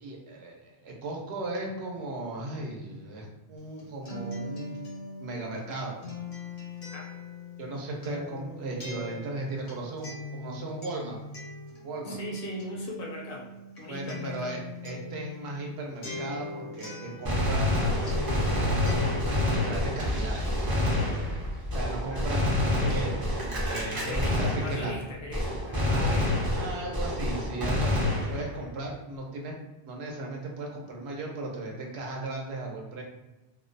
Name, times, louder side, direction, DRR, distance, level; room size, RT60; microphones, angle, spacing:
voice 1, 0.0-4.8 5.2-6.0 7.6-11.2 11.8-12.2 13.9-19.0 19.5-20.5 21.7-24.9 25.9-29.5 29.9-33.0, right 2 dB, 80° right, -1 dB, 0.9 m, -36 dB
Acoustic guitar, 3.6-17.8 18.0-19.6, left 2 dB, 80° left, 1.0 m, -40 dB
voice 2, 12.1-14.6 22.1-22.2 23.9-26.4, left 2 dB, 65° left, -2 dB, 0.7 m, -39 dB
Gunshot gunfire, 17.2-25.0 25.3-28.7, left 1 dB, 30° right, 0.4 m, -27 dB
2.6 x 2.1 x 2.5 m, 1.1 s
omnidirectional pair, 1.1 m